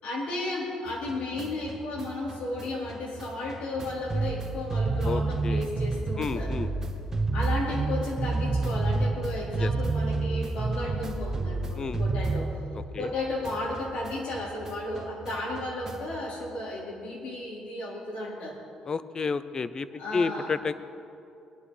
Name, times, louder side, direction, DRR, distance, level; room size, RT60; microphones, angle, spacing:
voice 1, 0.0-6.6 7.3-12.5 13.0-18.6 20.0-20.5, left 2 dB, 75° left, -4 dB, 4.4 m, -34 dB
sound 1, 0.9-13.1 13.4-16.2, right 3 dB, 25° right, 1.3 m, -30 dB
voice 2, 5.0-5.7 6.2-6.7 9.6-9.7 11.8-12.0 12.9-13.1 18.9-19.9 20.1-20.8, left 4 dB, 30° left, 14 dB, 0.6 m, -30 dB
20.5 x 11.0 x 5.0 m, 2.7 s
cardioid pair, 115°, 2 cm